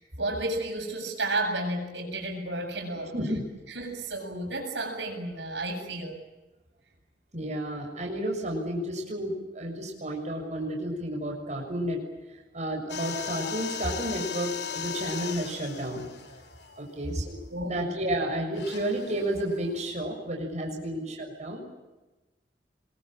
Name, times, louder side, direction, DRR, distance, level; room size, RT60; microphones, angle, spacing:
voice 1, 0.0-3.1 3.7-6.2 17.5-17.9, right 2 dB, 85° right, 2 dB, 7.9 m, -32 dB
voice 2, 2.9-3.4 7.3-12.0 12.5-16.1 16.8-17.2 17.6-21.6, right 1 dB, 40° right, 1 dB, 6.6 m, -31 dB
sound 1, 12.9-17.4 18.5-19.9, left 7 dB, 70° left, 3.1 m, -38 dB
26.0 x 22.5 x 9.0 m, 1.1 s
head